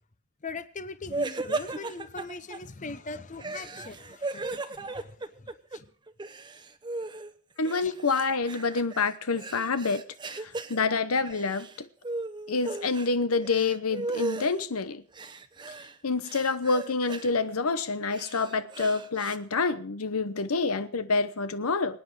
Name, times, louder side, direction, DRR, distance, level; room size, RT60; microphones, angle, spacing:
voice 1, 0.4-5.9 7.8-7.9, left 3 dB, 35° left, 0.8 m, -41 dB
sound 1, 1.1-2.6 3.4-5.8 6.1-7.3 7.6-10.8 11.2-11.8 12.0-13.1 13.4-14.5 15.1-15.9 16.2-17.3 17.9-19.4, right 3 dB, 20° right, 0.8 m, -36 dB
voice 2, 7.6-11.9 12.5-15.0 16.0-22.0, left 4 dB, 85° left, 0.9 m, -27 dB
24.5 x 9.4 x 4.8 m
head